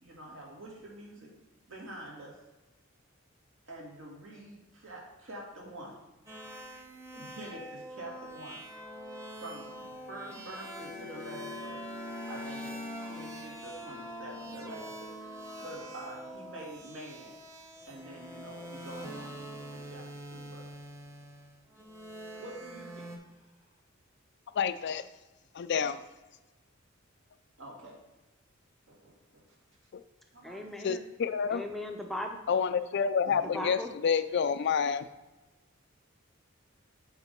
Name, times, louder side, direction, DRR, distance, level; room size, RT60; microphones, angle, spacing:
voice 1, 0.0-1.3 1.7-2.4 3.7-6.0 6.9-8.6 9.4-11.9 12.2-17.3 17.9-20.7 22.4-23.5 27.6-28.0 28.9-29.5 30.3-30.7 33.2-33.5, right 1 dB, 70° right, -3 dB, 2.3 m, -47 dB
sound 1, 6.3-23.2, equal, 15° right, 1.0 m, -44 dB
voice 2, 24.5-25.0 25.5-26.0 30.8-31.6 32.5-35.1, left 6 dB, 55° left, 12 dB, 0.4 m, -28 dB
voice 3, 30.4-31.1 31.5-32.4 33.4-33.9, left 1 dB, ahead, 3 dB, 0.6 m, -38 dB
8.0 x 3.6 x 5.3 m, 1.1 s
head